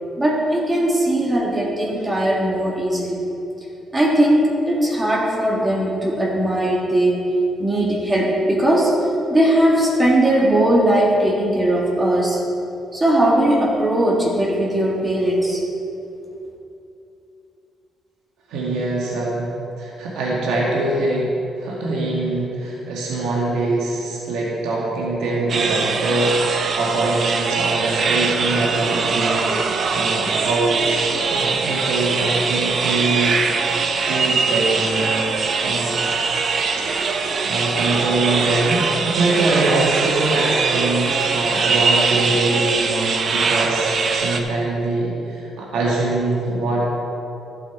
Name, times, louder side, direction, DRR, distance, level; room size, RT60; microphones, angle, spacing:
voice 1, 0.2-3.2 3.9-7.3 7.6-9.0 9.3-12.4 12.9-15.6, right 1 dB, 20° right, -3 dB, 1.8 m, -19 dB
voice 2, 18.5-19.5 19.8-21.3 21.5-29.5 29.7-33.4 34.0-36.0 36.8-36.9 37.2-46.9, right 2 dB, 90° right, -4 dB, 1.9 m, -23 dB
sound 1, 25.5-44.4, right 4 dB, 55° right, 0.8 m, -22 dB
12.5 x 7.6 x 4.5 m, 2.8 s
cardioid pair, 90°, 0 cm